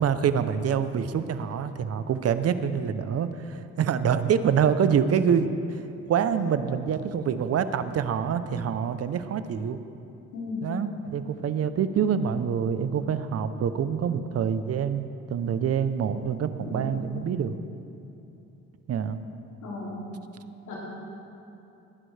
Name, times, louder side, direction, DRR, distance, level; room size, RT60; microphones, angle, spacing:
voice 1, 0.0-5.8 6.1-9.8 10.6-17.5 18.9-19.2, right 7 dB, 55° right, 11 dB, 0.7 m, -26 dB
voice 2, 10.3-10.6 16.6-16.9 19.6-19.9 20.7-20.8, left 3 dB, 75° left, -6 dB, 2.8 m, -35 dB
19.0 x 11.0 x 3.3 m, 2.8 s
cardioid pair, 90°, 30 cm